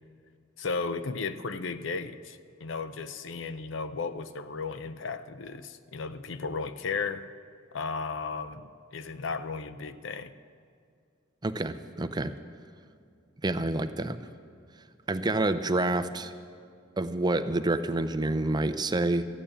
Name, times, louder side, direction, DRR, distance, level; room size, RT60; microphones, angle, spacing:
voice 1, 0.6-7.3 7.7-10.3, left 4 dB, 65° left, 12 dB, 0.6 m, -35 dB
voice 2, 11.4-12.3 13.4-14.2 15.1-16.3 17.0-19.2, right 2 dB, 20° right, 10 dB, 0.5 m, -28 dB
14.5 x 9.1 x 8.6 m, 2.3 s
head